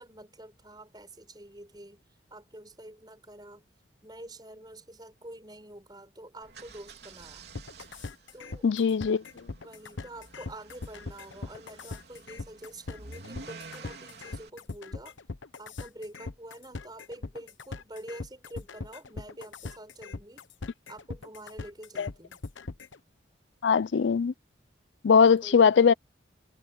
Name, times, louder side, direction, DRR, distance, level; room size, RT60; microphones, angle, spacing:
voice 1, 0.0-2.0 2.3-3.7 4.0-7.5 8.3-8.7 9.6-15.2 15.6-20.5 20.9-22.4 25.1-25.7, right 1 dB, 20° right, 5.8 m, -47 dB
sound 1, 6.4-14.5, right 3 dB, 60° right, 3.7 m, -50 dB
sound 2, 7.5-23.0, left 3 dB, 90° left, 1.1 m, -40 dB
voice 2, 8.6-9.2 22.0-22.1 23.6-24.3 25.0-25.9, left 6 dB, 70° left, 0.4 m, -21 dB
head